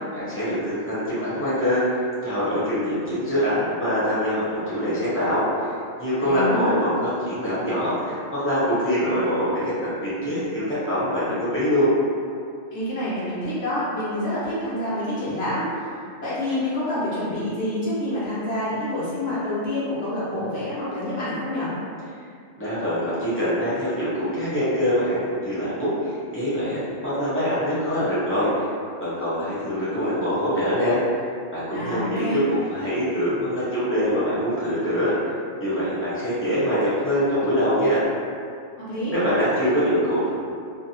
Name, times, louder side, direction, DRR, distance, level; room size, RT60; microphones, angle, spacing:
voice 1, 0.1-1.8 2.2-5.5 6.0-11.9 22.6-28.5 29.0-31.0 31.5-35.1 35.6-38.0 39.1-40.3, equal, 10° left, -12 dB, 0.8 m, -24 dB
voice 2, 6.2-6.8 12.7-15.9 16.2-21.7 31.7-32.4 38.8-39.1, left 1 dB, 65° left, -10 dB, 1.0 m, -27 dB
2.6 x 2.1 x 2.7 m, 2.3 s
omnidirectional pair, 1.2 m